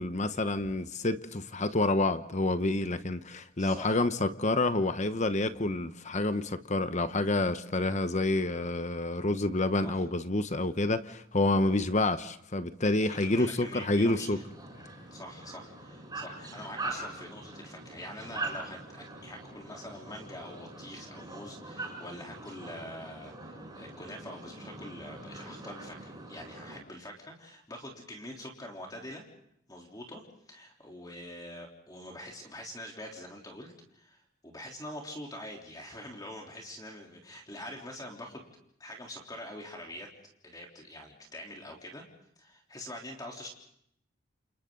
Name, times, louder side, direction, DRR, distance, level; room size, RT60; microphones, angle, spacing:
voice 1, 0.0-14.4, left 2 dB, 35° left, 1.0 m, -28 dB
voice 2, 3.6-4.0 9.8-10.1 13.0-14.4 15.1-29.3 29.7-38.5 38.8-40.1 40.4-42.1 42.4-43.5, left 1 dB, 20° left, 3.6 m, -45 dB
sound 1, 13.6-26.8, right 2 dB, 20° right, 7.3 m, -43 dB
29.5 x 29.0 x 3.9 m
head